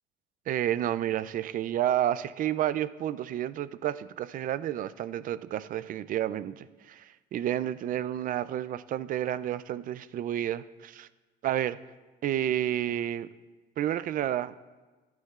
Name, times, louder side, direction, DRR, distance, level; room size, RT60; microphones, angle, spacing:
voice 1, 0.5-11.1 11.4-11.8 12.2-13.3 13.8-14.5, right 11 dB, 55° right, 16 dB, 0.4 m, -30 dB
16.0 x 9.5 x 2.4 m, 1.3 s
cardioid pair, 110°, 17 cm